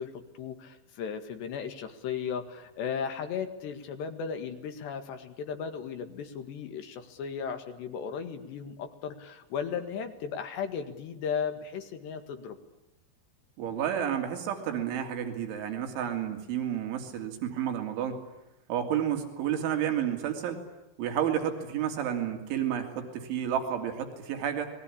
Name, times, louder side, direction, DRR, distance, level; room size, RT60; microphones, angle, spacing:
voice 1, 0.0-12.6, left 7 dB, 70° left, 7 dB, 4.0 m, -36 dB
voice 2, 13.6-18.2 18.7-20.6 21.0-24.7, right 9 dB, 80° right, 5 dB, 5.3 m, -31 dB
29.5 x 21.0 x 8.7 m, 0.95 s
omnidirectional pair, 5.4 m